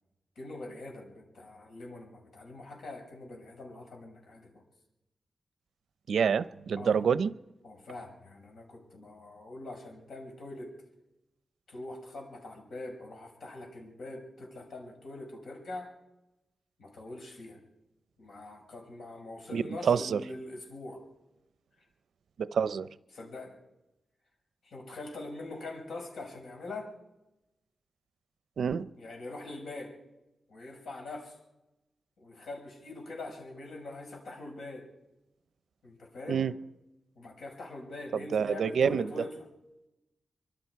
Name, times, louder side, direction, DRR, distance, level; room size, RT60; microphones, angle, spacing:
voice 1, 0.4-4.6 6.8-7.1 7.6-10.8 11.7-15.9 16.8-17.6 18.2-21.0 23.1-23.6 24.6-26.9 29.0-30.0 30.5-31.4 32.2-34.9 35.8-36.5 37.2-39.4, left 2 dB, 75° left, 5.8 m, -43 dB
voice 2, 6.1-7.3 19.5-20.2 22.4-22.9 28.6-28.9 36.3-36.5 38.3-39.1, right 7 dB, 85° right, 0.6 m, -27 dB
25.0 x 23.5 x 4.7 m
wide cardioid pair, 160°, 0 cm